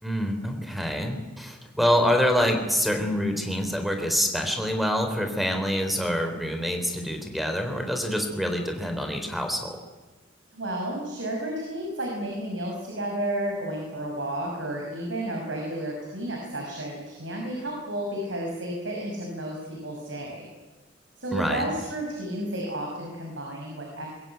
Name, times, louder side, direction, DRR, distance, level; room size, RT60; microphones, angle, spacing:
voice 1, 0.0-9.8 21.3-21.7, equal, ahead, 5 dB, 3.7 m, -26 dB
voice 2, 10.5-20.5 21.2-24.1, right 1 dB, 80° right, 0 dB, 6.2 m, -32 dB
22.5 x 21.5 x 9.3 m, 1.2 s
head